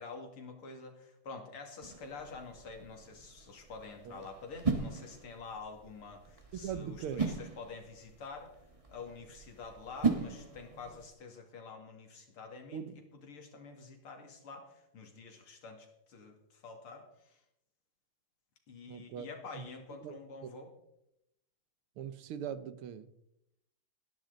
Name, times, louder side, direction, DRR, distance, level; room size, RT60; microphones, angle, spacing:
voice 1, 0.0-8.5 8.9-12.8 13.2-17.4 18.7-20.7, left 4 dB, 85° left, 3 dB, 3.2 m, -48 dB
sound 1, 1.8-11.1, right 4 dB, 15° right, 1.5 m, -39 dB
voice 2, 6.5-7.3 12.7-12.9 18.9-19.3 19.6-19.7 20.0-20.2 20.4-20.5 22.0-23.1, right 8 dB, 85° right, 13 dB, 1.8 m, -41 dB
20.0 x 10.5 x 4.0 m, 0.82 s
omnidirectional pair, 2.3 m